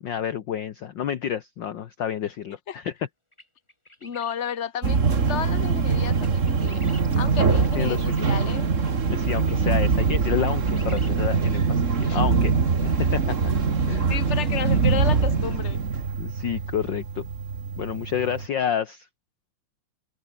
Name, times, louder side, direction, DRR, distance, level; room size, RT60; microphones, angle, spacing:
voice 1, 0.0-2.9 7.7-8.2 9.1-12.5 12.8-13.5 13.9-14.1 16.2-17.3 17.8-19.1, left 9 dB, 60° left, 1.2 m, -29 dB
sound 1, 2.8-2.9 3.3-4.4 5.2-5.3 5.8-7.2 7.6-7.7 8.1-8.2 8.8-8.9 9.4-9.5 9.7-10.1 10.4-11.2 11.4-11.5 11.9-12.1, left 1 dB, 10° left, 5.5 m, -48 dB
voice 2, 4.0-5.0 5.3-8.6 12.0-12.2 14.1-15.8, left 8 dB, 35° left, 1.3 m, -32 dB
sound 2, 4.8-18.5, right 5 dB, 30° right, 1.7 m, -23 dB
open air
omnidirectional pair, 3.5 m